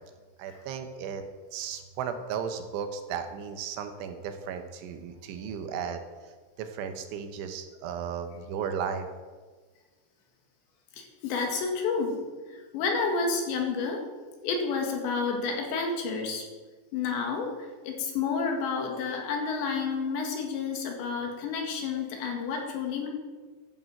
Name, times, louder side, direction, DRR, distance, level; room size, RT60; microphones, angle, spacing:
voice 1, 0.4-1.2 1.5-6.0 6.6-9.1, right 7 dB, 75° right, 7 dB, 3.3 m, -35 dB
voice 2, 10.9-12.2 12.5-14.1 14.4-16.5 16.9-23.1, left 4 dB, 70° left, 2 dB, 4.0 m, -30 dB
13.5 x 9.3 x 7.7 m, 1.4 s
omnidirectional pair, 5.8 m